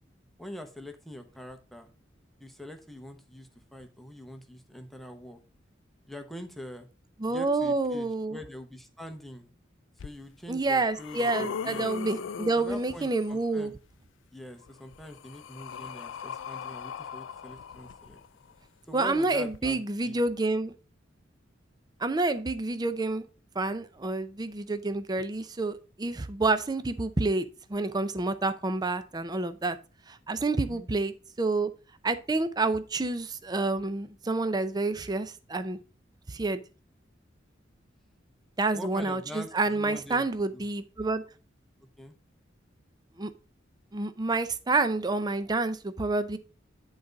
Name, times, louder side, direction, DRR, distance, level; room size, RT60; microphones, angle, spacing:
voice 1, 0.4-1.9 2.4-5.4 6.1-6.9 7.3-9.5 10.0-11.9 12.5-13.7 14.3-18.2 18.9-20.2 30.6-30.9 38.7-40.2 40.5-40.6 42.0-42.1, left 1 dB, ahead, 5 dB, 0.9 m, -44 dB
voice 2, 7.2-8.4 10.5-13.7 18.9-20.7 22.0-23.3 23.6-29.8 30.1-31.7 32.0-35.8 36.3-36.6 38.6-41.2 43.2-43.3 43.9-46.4, right 3 dB, 20° right, 11 dB, 0.5 m, -28 dB
sound 1, 10.0-10.1 10.6-13.4 14.6-18.5 19.5-19.6, left 6 dB, 85° left, 0.4 m, -39 dB
10.5 x 4.0 x 5.1 m, 0.33 s
head